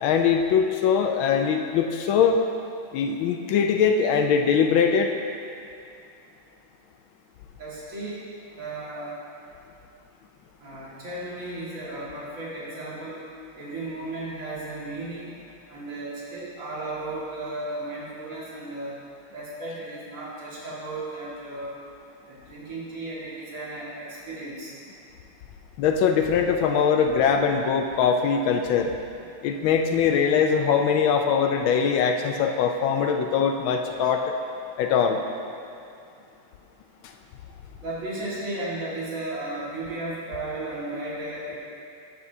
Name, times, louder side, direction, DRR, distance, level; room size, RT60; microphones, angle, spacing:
voice 1, 0.0-2.4 2.9-5.1 25.8-28.9 29.4-34.3 34.8-35.2 37.0-37.1, left 6 dB, 75° left, 4 dB, 1.3 m, -22 dB
voice 2, 7.6-8.2 8.6-9.1 10.6-13.2 13.6-15.3 15.7-18.9 19.3-21.7 22.2-24.7 37.8-41.6, right 2 dB, 40° right, -8 dB, 2.2 m, -34 dB
11.5 x 8.2 x 2.7 m, 2.6 s
omnidirectional pair, 2.4 m